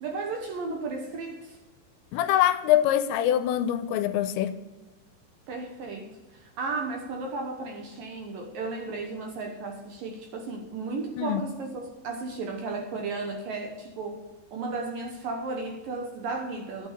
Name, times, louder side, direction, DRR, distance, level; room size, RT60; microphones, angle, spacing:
voice 1, 0.0-1.6 5.5-14.2 14.5-16.9, right 3 dB, 65° right, 2.3 m, -34 dB
voice 2, 2.1-4.6 11.2-11.4, left 11 dB, 85° left, 2.9 m, -24 dB
11.5 x 9.1 x 6.6 m
omnidirectional pair, 5.2 m